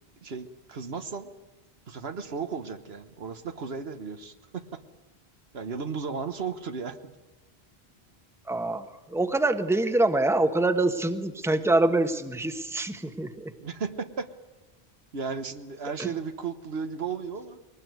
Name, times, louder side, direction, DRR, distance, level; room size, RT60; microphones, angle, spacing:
voice 1, 0.2-1.3 1.9-4.8 5.5-7.1 13.6-14.3 15.1-17.6, right 5 dB, 75° right, 9 dB, 1.5 m, -35 dB
voice 2, 8.5-13.5 16.0-16.1, right 2 dB, 5° right, 8 dB, 1.2 m, -25 dB
22.0 x 19.0 x 9.4 m, 1.1 s
omnidirectional pair, 1.1 m